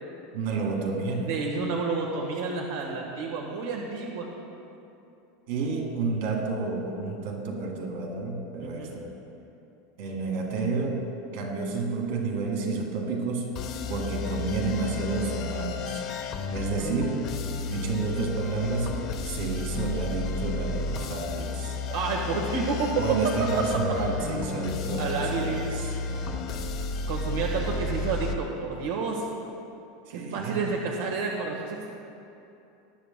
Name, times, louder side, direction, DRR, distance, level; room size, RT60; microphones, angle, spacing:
voice 1, 0.3-1.3 5.5-9.1 10.0-11.0 11.3-13.6 13.9-17.3 17.7-21.7 23.0-26.5 30.1-30.6, right 3 dB, 60° right, 1 dB, 1.8 m, -30 dB
voice 2, 1.2-4.3 8.6-9.0 21.9-23.5 25.0-25.6 27.1-29.3 30.1-31.9, right 4 dB, 85° right, -1 dB, 1.3 m, -30 dB
sound 1, 13.6-28.4, left 4 dB, 40° left, 0.7 m, -32 dB
19.5 x 10.5 x 2.2 m, 2.8 s
supercardioid pair, 165°, 0 cm